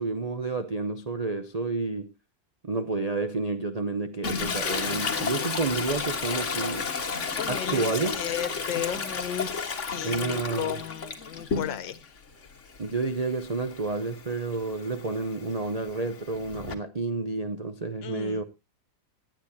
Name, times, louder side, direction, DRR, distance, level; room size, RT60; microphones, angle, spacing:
voice 1, 0.0-2.1 2.6-6.9 7.5-8.2 10.0-10.8 12.8-18.4, right 3 dB, 65° right, 0.3 m, -30 dB
Toilet flush, 4.2-12.0 12.4-16.7, left 5 dB, 40° left, 1.7 m, -33 dB
voice 2, 7.3-12.2 18.0-18.4, left 10 dB, 80° left, 1.7 m, -34 dB
18.5 x 10.5 x 2.7 m
omnidirectional pair, 2.0 m